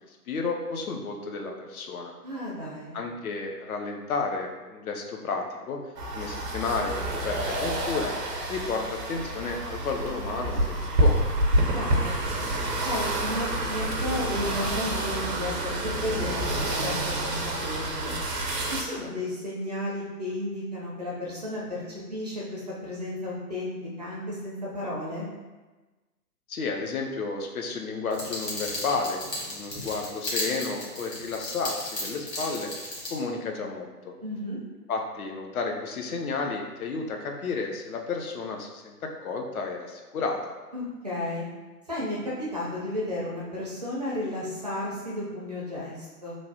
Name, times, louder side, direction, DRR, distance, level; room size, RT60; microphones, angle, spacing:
voice 1, 0.0-2.1 2.9-5.8 6.1-8.1 8.5-11.2 26.5-32.7 33.1-34.1 34.9-40.4, left 4 dB, 60° left, 2 dB, 0.6 m, -32 dB
voice 2, 2.2-2.9 11.7-12.2 12.8-18.1 18.6-25.3 34.2-34.6 40.7-41.4 41.9-46.3, left 1 dB, 30° right, -6 dB, 0.4 m, -33 dB
sound 1, 6.0-18.8, right 1 dB, 90° right, 0.7 m, -28 dB
sound 2, 28.1-33.1, left 1 dB, 80° left, 1.2 m, -35 dB
3.1 x 2.0 x 2.6 m, 1.2 s
figure-of-eight pair, 125°, 48 cm